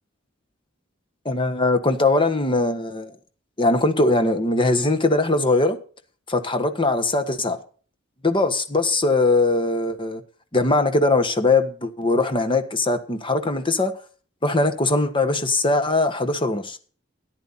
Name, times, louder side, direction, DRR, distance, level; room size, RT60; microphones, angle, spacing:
voice 1, 1.2-3.1 3.6-5.8 6.3-7.6 8.2-10.2 10.5-13.9 14.4-16.8, left 2 dB, 25° left, 1.4 m, -21 dB
13.5 x 10.5 x 4.2 m
head